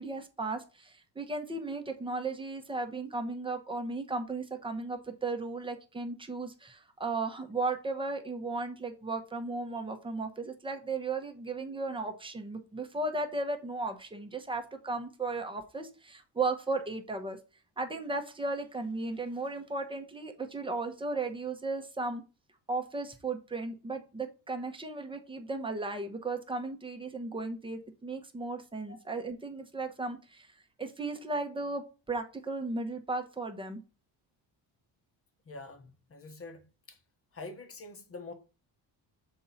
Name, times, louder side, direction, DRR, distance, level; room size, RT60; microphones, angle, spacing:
voice 1, 0.0-17.4 17.8-22.2 22.7-30.5 30.8-33.8, right 3 dB, 10° right, 1.0 m, -35 dB
voice 2, 35.5-36.6 36.9-37.0 37.3-38.3, left 3 dB, 30° left, 1.2 m, -45 dB
6.9 x 3.7 x 4.1 m
cardioid pair, 135°, 45 cm